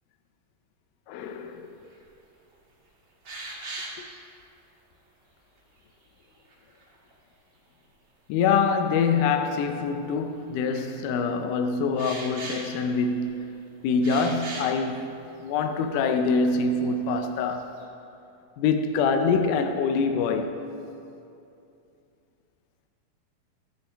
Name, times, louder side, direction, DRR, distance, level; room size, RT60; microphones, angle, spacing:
voice 1, 1.1-1.7 4.0-4.1 8.3-13.4 13.8-15.1 15.4-17.7 18.6-20.5, left 5 dB, 80° left, 1.8 m, -25 dB
sound 1, 1.9-2.0 2.5-2.6 3.2-4.2 6.3-7.1 8.3-8.4 9.3-9.4 10.6-10.9 12.0-13.4 14.0-14.8 15.5-15.6 15.9-16.0 16.4-16.9 17.2-17.8, right 2 dB, 60° right, 1.2 m, -39 dB
14.0 x 7.9 x 3.4 m
omnidirectional pair, 4.1 m